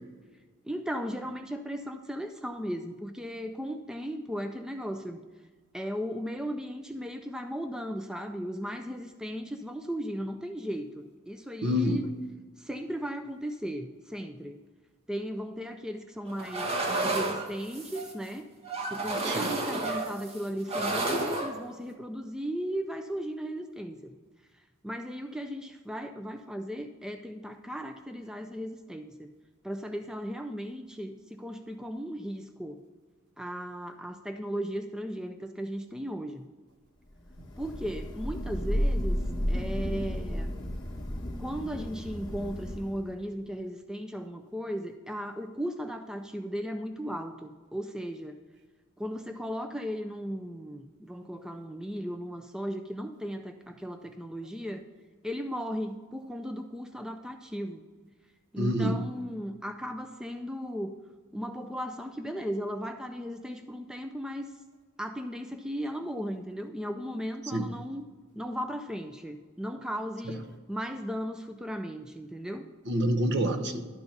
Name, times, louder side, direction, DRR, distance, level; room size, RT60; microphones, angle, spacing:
voice 1, 0.7-5.2 5.7-12.0 12.6-14.6 15.1-18.5 18.9-24.1 24.8-29.3 29.6-32.8 33.4-36.4 37.6-39.2 39.5-40.5 41.4-48.4 49.0-54.9 55.2-57.8 58.5-61.0 61.3-64.5 65.0-68.0 68.3-72.7, equal, 5° right, 6 dB, 0.3 m, -36 dB
voice 2, 11.6-12.1 19.2-19.5 58.6-59.1 67.4-67.7 70.2-70.4 72.8-73.8, equal, 55° right, 7 dB, 0.8 m, -27 dB
sound 1, 16.3-18.1 18.6-20.4 20.7-21.6, right 2 dB, 30° right, 0.9 m, -31 dB
Thunder / Rain, 37.4-43.1, equal, 20° left, 1.1 m, -32 dB
11.5 x 3.9 x 5.8 m, 1.5 s
head